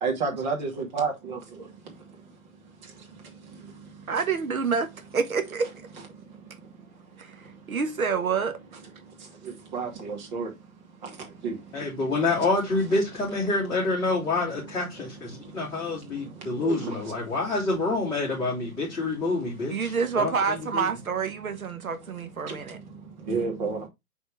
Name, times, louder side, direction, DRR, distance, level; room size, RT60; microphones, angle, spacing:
voice 1, 0.0-1.7 9.4-10.5 11.0-11.6 16.3-17.0 23.2-23.9, right 4 dB, 30° right, 2.5 m, -30 dB
voice 2, 4.1-5.7 7.2-8.6 19.7-22.8, right 5 dB, 70° right, 1.4 m, -28 dB
voice 3, 11.7-20.9, left 3 dB, 10° left, 3.2 m, -27 dB
8.0 x 4.3 x 3.4 m
figure-of-eight pair, 140°, 43 cm